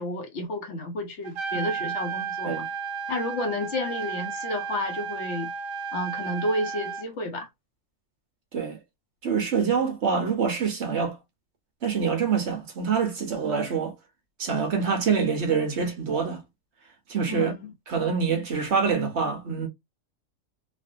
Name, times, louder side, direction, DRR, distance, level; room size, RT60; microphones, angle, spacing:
voice 1, 0.0-2.6 3.1-5.5 5.9-7.5 17.3-17.7, left 1 dB, 60° left, 1.2 m, -31 dB
Trumpet, 1.2-7.0, right 6 dB, 80° right, 1.0 m, -33 dB
voice 2, 9.2-11.2 11.8-13.9 14.4-16.4 17.1-17.5 17.9-19.7, right 6 dB, 60° right, 1.1 m, -25 dB
3.2 x 2.5 x 2.5 m
omnidirectional pair, 1.4 m